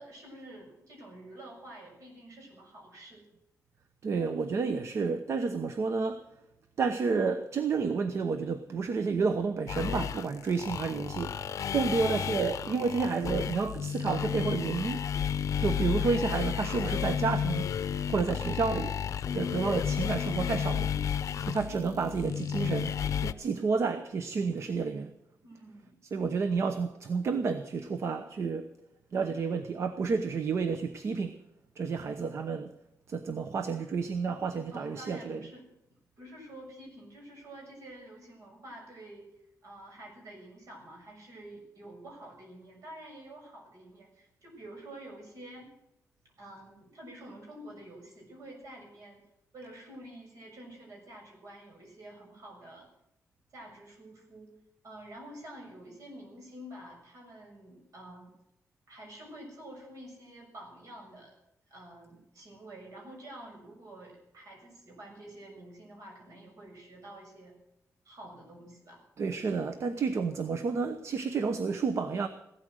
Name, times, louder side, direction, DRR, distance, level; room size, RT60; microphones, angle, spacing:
voice 1, 0.0-3.3 11.3-12.1 21.3-21.7 25.4-26.0 26.3-26.4 34.7-39.3 39.6-45.7 46.4-49.2 49.5-52.9 53.5-54.5 54.8-58.3 58.9-61.4 61.7-67.6 68.1-69.0, right 1 dB, 70° right, 6.9 m, -48 dB
voice 2, 4.0-6.3 6.8-11.4 11.7-15.1 15.6-17.7 18.1-19.0 19.3-20.9 21.4-25.1 26.1-28.7 29.1-31.4 31.8-32.7 33.1-35.4 69.2-72.3, right 5 dB, 55° right, 0.9 m, -30 dB
sound 1, 9.7-23.3, left 8 dB, 65° left, 0.7 m, -32 dB
16.5 x 13.0 x 6.4 m
wide cardioid pair, 160°, 6 cm